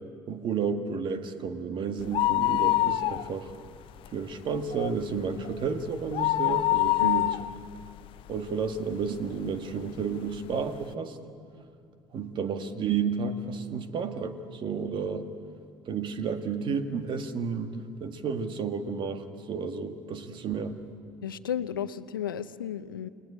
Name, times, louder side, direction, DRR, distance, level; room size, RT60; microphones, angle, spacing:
voice 1, 0.3-3.5 4.1-7.4 8.3-11.2 12.1-15.3 15.9-20.7, right 5 dB, 50° right, 7 dB, 2.0 m, -31 dB
sound 1, 2.0-3.7 4.0-4.1 4.5-8.9 9.5-9.6 10.3-10.4 10.7-10.8, left 16 dB, 55° left, 0.5 m, -26 dB
voice 2, 7.0-7.3 21.2-23.1, left 9 dB, 90° left, 13 dB, 0.8 m, -33 dB
29.0 x 19.5 x 8.7 m, 2.4 s
hypercardioid pair, 65°, 11 cm